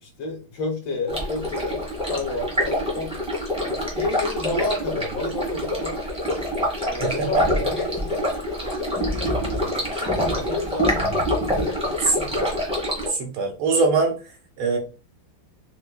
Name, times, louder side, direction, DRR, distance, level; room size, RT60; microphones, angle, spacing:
voice 1, 0.0-3.2 3.6-6.0 6.8-8.3 8.6-11.0 11.5-11.9, left 2 dB, 65° left, 2 dB, 1.5 m, -31 dB
Stream, 1.1-13.1, equal, 10° right, 0.3 m, -26 dB
voice 2, 7.0-7.4 12.1-12.5 13.1-14.1 14.6-14.8, right 4 dB, 85° right, 3 dB, 1.8 m, -23 dB
4.4 x 2.5 x 2.3 m, 0.33 s
omnidirectional pair, 2.3 m